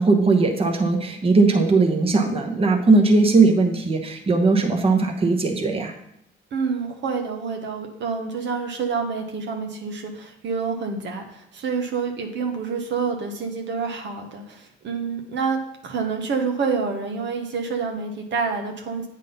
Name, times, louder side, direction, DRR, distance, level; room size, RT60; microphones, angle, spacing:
voice 1, 0.0-5.9, right 3 dB, 30° right, 3 dB, 1.0 m, -19 dB
voice 2, 6.5-19.1, right 5 dB, 65° right, 3 dB, 1.1 m, -28 dB
8.3 x 3.7 x 5.4 m, 0.76 s
cardioid pair, 90°, 20 cm